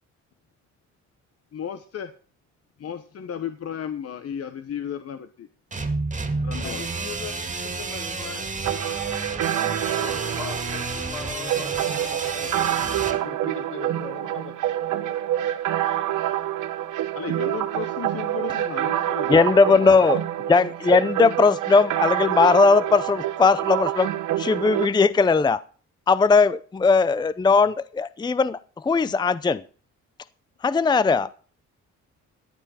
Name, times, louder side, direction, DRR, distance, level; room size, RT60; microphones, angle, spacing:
voice 1, 1.5-2.1 2.8-5.5 6.4-6.8 17.1-19.4 19.7-20.0, left 8 dB, 55° left, 1.0 m, -34 dB
sound 1, 5.7-13.2, right 3 dB, 25° right, 2.2 m, -31 dB
voice 2, 6.6-8.5 9.5-9.6 9.9-15.2, left 5 dB, 80° left, 4.7 m, -40 dB
sound 2, 8.6-24.9, right 12 dB, 85° right, 1.1 m, -27 dB
voice 3, 19.3-20.2 20.5-24.1 24.4-25.6 26.1-29.6 30.6-31.3, left 4 dB, 15° left, 0.5 m, -19 dB
14.5 x 10.0 x 4.3 m
cardioid pair, 90°, 30 cm